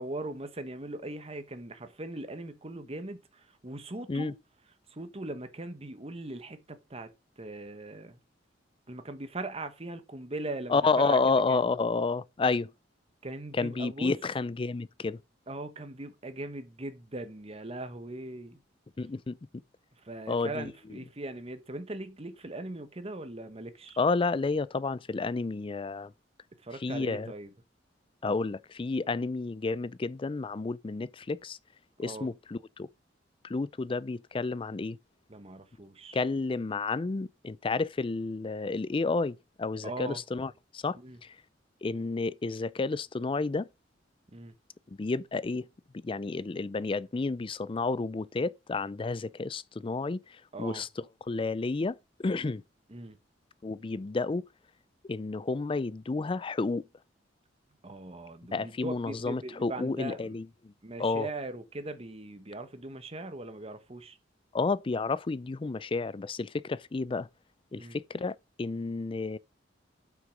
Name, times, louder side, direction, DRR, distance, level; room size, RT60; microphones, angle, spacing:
voice 1, 0.0-4.4 4.9-7.1 7.4-8.2 8.9-11.2 11.5-11.6 13.2-14.1 15.5-18.6 20.0-24.0 26.6-27.5 32.0-32.3 35.3-36.2 39.8-40.2 40.9-41.2 44.3-44.5 50.5-50.9 52.9-53.2 57.8-60.4 60.8-64.2 67.8-68.0, right 2 dB, 35° right, 1.2 m, -40 dB
voice 2, 10.7-12.7 13.5-15.2 19.0-19.6 20.3-20.7 24.0-26.1 26.8-27.3 28.2-31.6 32.0-32.9 33.4-35.0 36.1-41.4 41.8-43.7 44.9-45.7 45.9-50.9 51.3-52.6 53.6-54.5 55.0-56.8 58.5-60.7 61.0-61.3 64.5-67.3 67.7-69.4, left 3 dB, 30° left, 0.4 m, -31 dB
7.5 x 6.0 x 5.1 m
head